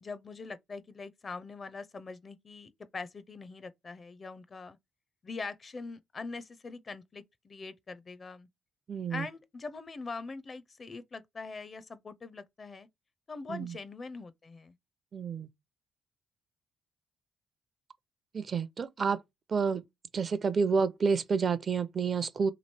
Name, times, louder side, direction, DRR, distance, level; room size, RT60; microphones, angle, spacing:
voice 1, 0.0-4.8 5.2-8.5 9.1-12.9 13.3-14.7, left 4 dB, 35° left, 0.5 m, -43 dB
voice 2, 8.9-9.3 13.5-13.7 15.1-15.5 18.3-19.2 19.5-19.8 20.1-22.5, right 5 dB, 45° right, 0.5 m, -29 dB
3.0 x 2.8 x 4.2 m
cardioid pair, 90°, 0 cm